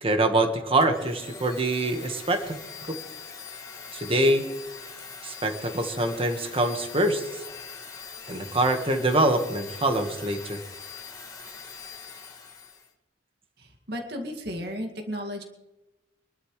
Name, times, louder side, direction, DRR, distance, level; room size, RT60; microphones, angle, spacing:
voice 1, 0.0-2.5 3.9-4.4 5.2-7.4 8.3-10.6, right 1 dB, 30° right, 6 dB, 1.5 m, -24 dB
Domestic sounds home sounds, 0.8-12.9, left 5 dB, 20° left, 2.0 m, -42 dB
voice 2, 13.9-15.4, equal, 60° right, 2 dB, 2.2 m, -33 dB
25.0 x 12.5 x 3.2 m, 1.0 s
head